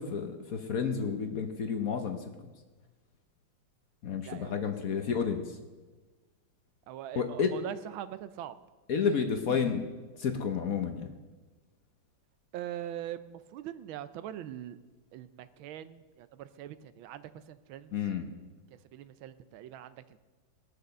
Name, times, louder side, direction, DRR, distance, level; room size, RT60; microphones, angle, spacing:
voice 1, 0.0-2.5 4.0-5.6 7.2-7.5 8.9-9.9 10.2-11.1 17.9-18.3, left 6 dB, 55° left, 6 dB, 1.1 m, -31 dB
voice 2, 4.2-5.3 6.9-8.6 9.0-9.2 9.5-9.7 12.5-14.8 15.1-17.9 18.7-20.2, right 11 dB, 80° right, 14 dB, 1.4 m, -42 dB
19.5 x 6.8 x 6.6 m, 1.3 s
omnidirectional pair, 2.2 m